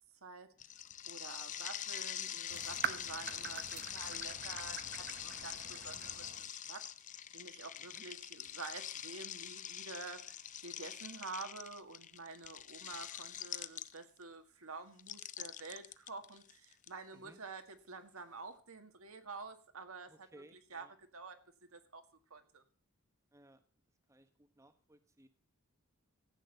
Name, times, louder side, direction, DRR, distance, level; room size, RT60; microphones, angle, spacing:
voice 1, 0.2-0.7 1.1-6.8 7.3-20.1 20.7-21.4 21.7-22.0 22.3-22.6, right 4 dB, 70° right, 7 dB, 1.9 m, -49 dB
sound 1, 0.6-14.2 15.0-16.9, left 10 dB, 35° left, 0.6 m, -44 dB
sound 2, 2.5-6.5, right 7 dB, 45° right, 1.0 m, -44 dB
voice 2, 20.1-20.9 23.3-23.6 24.1-25.3, right 1 dB, 15° right, 8 dB, 1.1 m, -61 dB
14.5 x 9.0 x 6.8 m, 0.40 s
head